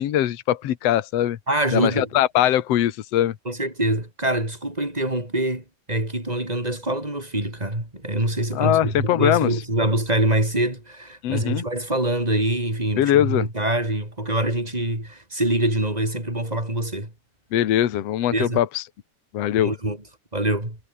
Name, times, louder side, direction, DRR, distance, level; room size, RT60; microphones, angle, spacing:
voice 1, 0.0-1.4 1.7-3.3 8.5-9.6 11.2-11.6 13.0-13.5 17.5-18.8 19.3-19.7, left 12 dB, 70° left, 1.5 m, -21 dB
voice 2, 1.5-2.1 3.5-17.1 18.3-18.6 19.6-20.0 20.3-20.8, right 1 dB, 10° right, 5.8 m, -24 dB
omnidirectional pair, 4.7 m